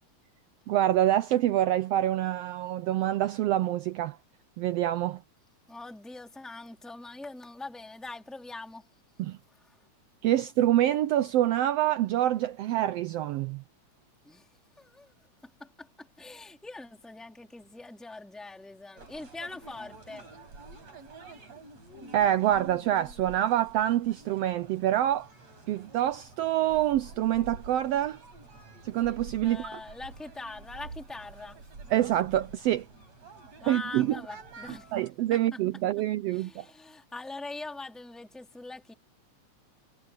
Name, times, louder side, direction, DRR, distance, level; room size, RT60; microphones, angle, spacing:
voice 1, 0.7-4.2 4.6-5.2 9.2-9.4 10.2-13.6 22.1-25.3 25.7-28.2 28.8-29.8 31.9-32.9 33.7-34.2 34.9-36.7, right 13 dB, 85° right, 1.4 m, -26 dB
voice 2, 5.7-8.9 14.2-14.5 14.8-15.1 15.4-20.3 29.4-31.6 33.6-34.9 35.3-35.4 36.3-38.9, left 3 dB, ahead, 3.7 m, -43 dB
sound 1, 19.0-35.1, right 3 dB, 60° right, 6.9 m, -48 dB
omnidirectional pair, 3.4 m